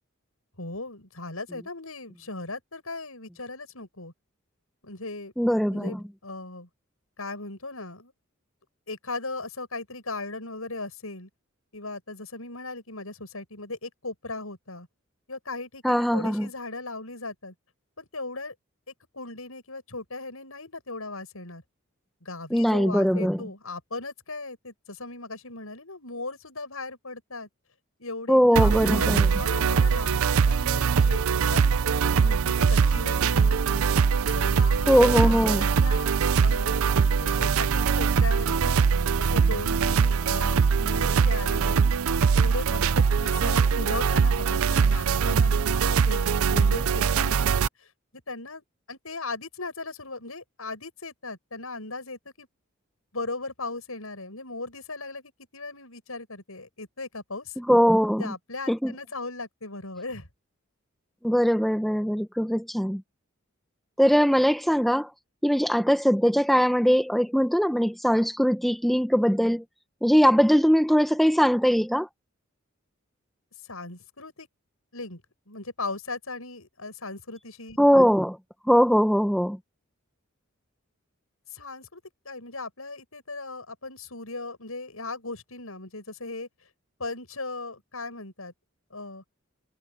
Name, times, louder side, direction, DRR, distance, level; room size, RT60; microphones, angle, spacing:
voice 1, 0.6-4.1 4.8-5.3 5.7-6.7 7.2-8.1 8.9-11.3 11.7-14.9 15.3-17.5 18.0-18.5 18.9-21.6 22.2-27.5 28.0-29.1 29.4-31.6 32.0-33.9 34.3-36.9 37.1-38.8 39.3-41.9 42.3-47.9 48.3-52.5 53.1-57.5 58.2-60.3 73.7-74.5 74.9-77.8 81.5-86.5 87.0-88.5 88.9-89.2, left 3 dB, 85° left, 7.4 m, -38 dB
voice 2, 5.4-6.0 15.8-16.5 22.5-23.4 28.3-29.3 34.9-35.6 57.6-58.3 58.7-58.9 61.2-63.0 64.0-65.1 65.4-69.6 70.0-72.1 77.8-78.4 78.7-79.6, equal, ahead, 0.9 m, -21 dB
sound 1, 28.6-47.7, right 6 dB, 85° right, 0.5 m, -22 dB
head